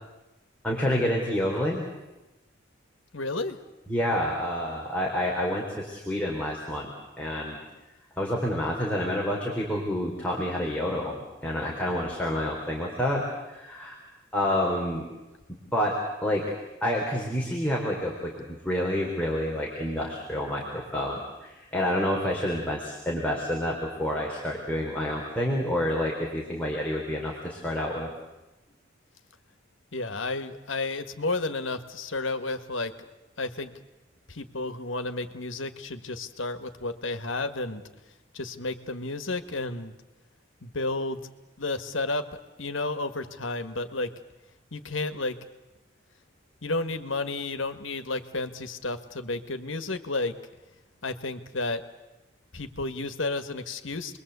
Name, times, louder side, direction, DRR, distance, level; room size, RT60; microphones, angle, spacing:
voice 1, 0.6-1.9 3.9-7.6 8.2-14.0 14.3-15.1 15.5-16.5 16.8-28.1, left 1 dB, 5° left, -3 dB, 4.0 m, -28 dB
voice 2, 3.1-3.6 29.9-33.1 33.4-33.7 34.3-37.8 38.3-39.9 40.6-41.3 41.6-42.3 42.6-44.1 44.7-45.4 46.6-50.4 51.0-51.8 52.5-54.2, left 2 dB, 80° left, 9 dB, 1.8 m, -32 dB
29.5 x 22.0 x 8.3 m, 1.1 s
head